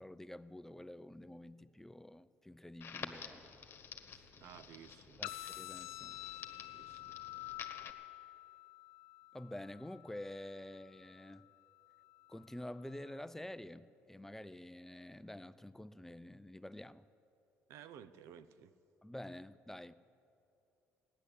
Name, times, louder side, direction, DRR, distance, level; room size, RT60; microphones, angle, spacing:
voice 1, 0.0-3.5 5.2-6.2 9.3-11.5 12.3-17.1 19.0-19.9, left 1 dB, 5° left, 15 dB, 0.4 m, -48 dB
Crackle, 2.8-7.9, left 6 dB, 50° left, 1.4 m, -50 dB
voice 2, 4.4-5.4 6.7-7.2 17.7-18.7, right 9 dB, 75° right, 13 dB, 0.6 m, -55 dB
sound 1, 5.2-13.2, left 18 dB, 90° left, 0.4 m, -50 dB
15.5 x 10.5 x 8.4 m, 2.7 s
supercardioid pair, 85°, 5 cm